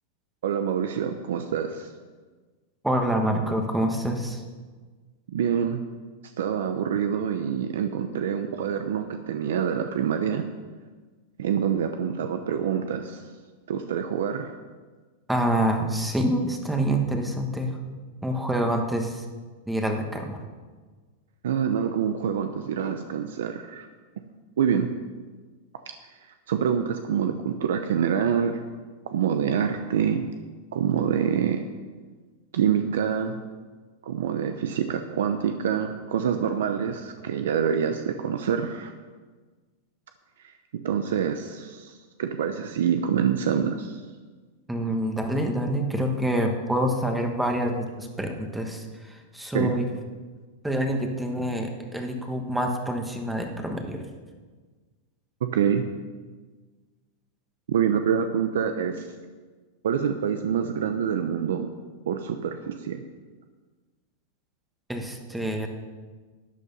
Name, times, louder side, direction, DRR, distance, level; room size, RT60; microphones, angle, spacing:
voice 1, 0.4-1.9 5.3-5.8 6.4-10.5 11.4-13.2 13.7-14.5 21.4-23.9 24.6-24.9 26.5-28.6 29.1-30.2 30.7-31.6 32.5-33.4 34.0-38.9 40.4-40.5 40.8-44.0 49.5-49.7 55.4-55.9 57.7-59.1 59.8-61.7 62.1-63.0, right 8 dB, 80° right, 7 dB, 0.8 m, -26 dB
voice 2, 2.8-4.4 15.3-17.7 18.2-19.2 19.7-20.4 44.7-49.9 50.6-54.0 64.9-65.7, right 1 dB, 5° right, 3 dB, 1.3 m, -26 dB
12.5 x 8.5 x 5.5 m, 1.4 s
supercardioid pair, 140°, 0 cm